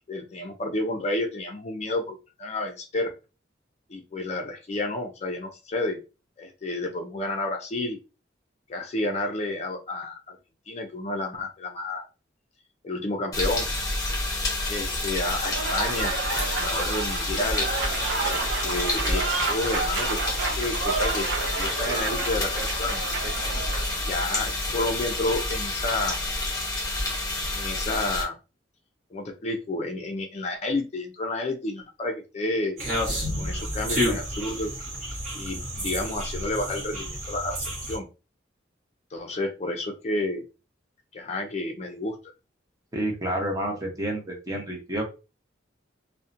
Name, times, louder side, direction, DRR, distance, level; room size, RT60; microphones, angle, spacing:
voice 1, 0.1-3.1 3.9-6.0 6.4-8.0 8.7-10.4 10.7-12.1 12.8-13.7 14.7-16.1 16.5-17.7 18.2-20.2 20.5-23.3 24.0-26.2 27.5-28.4 29.1-32.8 33.4-34.7 35.3-38.1 39.1-40.4 41.1-42.2, left 2 dB, 35° left, 4 dB, 0.4 m, -30 dB
sound 1, 13.3-28.2, left 2 dB, 20° left, 0.8 m, -29 dB
Applause / Crowd, 15.3-24.1, right 4 dB, 75° right, 0.5 m, -30 dB
sound 2, 32.8-38.0, equal, 40° right, 1.1 m, -30 dB
voice 2, 42.9-45.0, right 1 dB, 20° right, 1 dB, 0.6 m, -29 dB
2.6 x 2.1 x 2.5 m, 0.30 s
head